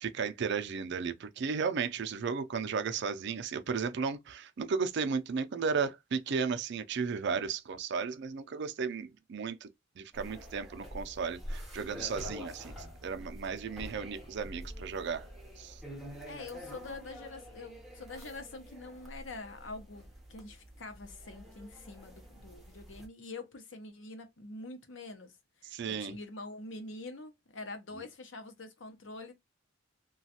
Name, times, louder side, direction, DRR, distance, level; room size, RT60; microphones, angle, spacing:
voice 1, 0.0-15.3 15.6-15.8 25.6-26.2, right 5 dB, 65° right, 0.4 m, -34 dB
sound 1, 10.1-23.1, equal, ahead, 0.9 m, -47 dB
voice 2, 16.3-25.3 25.6-29.3, left 3 dB, 70° left, 0.8 m, -45 dB
3.1 x 2.3 x 2.8 m
head